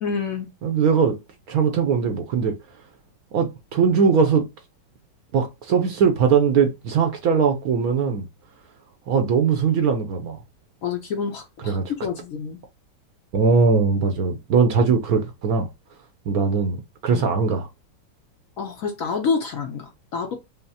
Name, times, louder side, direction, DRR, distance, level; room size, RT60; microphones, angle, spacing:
voice 1, 0.0-0.5 10.8-12.6 17.1-17.3 18.6-20.4, left 5 dB, 60° left, 0.9 m, -28 dB
voice 2, 0.6-1.1 1.5-2.5 3.3-4.5 5.3-8.3 9.1-10.4 11.7-11.8 13.3-15.7 16.3-16.8 17.0-17.7, right 5 dB, 65° right, 1.0 m, -20 dB
5.4 x 2.0 x 2.7 m
omnidirectional pair, 2.0 m